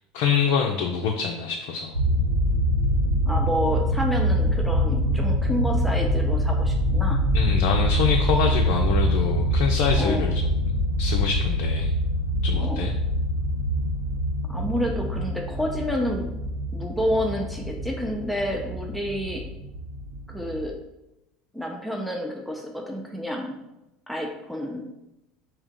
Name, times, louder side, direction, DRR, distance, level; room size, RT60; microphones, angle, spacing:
voice 1, 0.1-2.0 7.3-10.7 11.0-11.9 12.4-12.9, left 6 dB, 65° left, 1 dB, 0.4 m, -25 dB
sound 1, 1.9-20.6, equal, 90° right, 0.6 m, -24 dB
voice 2, 3.1-7.2 10.0-10.3 12.6-12.8 14.5-16.3 16.7-19.5 20.3-20.8 21.5-23.6 24.1-24.9, equal, ahead, 1 dB, 0.6 m, -29 dB
3.6 x 2.8 x 3.5 m, 0.92 s
hypercardioid pair, 80°, 0 cm